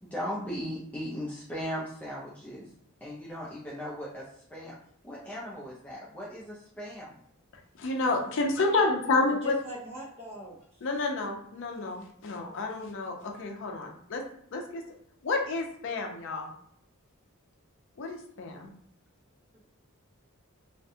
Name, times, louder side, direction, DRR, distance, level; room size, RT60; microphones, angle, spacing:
voice 1, 0.0-2.7 3.0-4.7 5.0-7.2, equal, 5° left, -7 dB, 0.4 m, -38 dB
voice 2, 7.8-9.5 10.8-14.2 14.5-14.8 15.2-16.5 18.0-18.7, left 3 dB, 60° left, 2 dB, 0.5 m, -29 dB
voice 3, 9.3-10.6 19.5-19.6, right 2 dB, 30° right, -4 dB, 0.8 m, -40 dB
2.5 x 2.2 x 2.7 m, 0.67 s
head